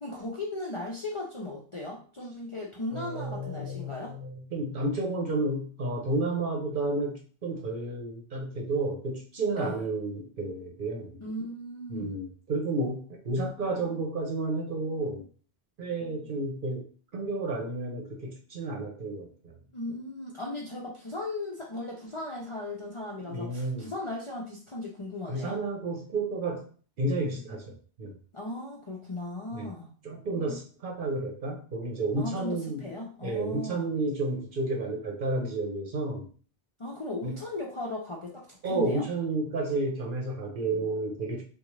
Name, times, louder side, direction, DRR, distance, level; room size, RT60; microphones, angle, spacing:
voice 1, 0.0-4.2 9.5-9.9 11.2-12.2 19.7-25.6 28.3-29.9 32.2-33.8 36.8-39.1, left 2 dB, 40° left, -3 dB, 0.5 m, -37 dB
voice 2, 2.9-11.2 11.9-15.2 15.8-16.9 17.1-19.5 23.3-23.9 25.3-26.6 27.0-28.1 29.5-29.7 30.0-32.9 33.2-36.3 37.2-37.4 38.6-41.4, right 2 dB, 55° right, 1 dB, 0.9 m, -31 dB
3.5 x 2.4 x 3.1 m, 0.42 s
omnidirectional pair, 1.1 m